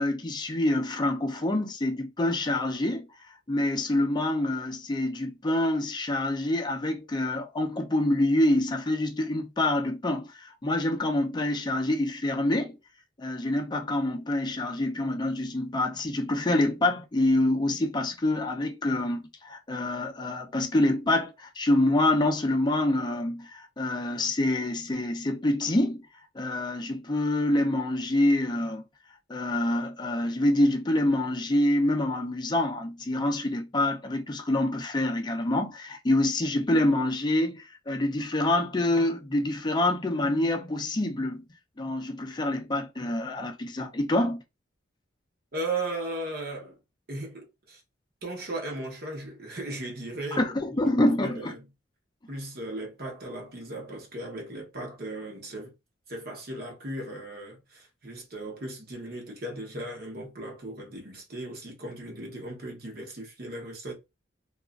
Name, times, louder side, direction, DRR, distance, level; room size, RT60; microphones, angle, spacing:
voice 1, 0.0-3.1 3.5-12.7 13.2-26.0 26.3-28.8 29.3-41.4 41.8-44.4 50.3-51.5, left 1 dB, 20° left, 0.5 m, -26 dB
voice 2, 45.5-46.8 47.1-47.8 48.2-51.6 52.3-55.7 56.1-64.0, right 2 dB, 50° right, 0.9 m, -37 dB
2.9 x 2.3 x 2.4 m
head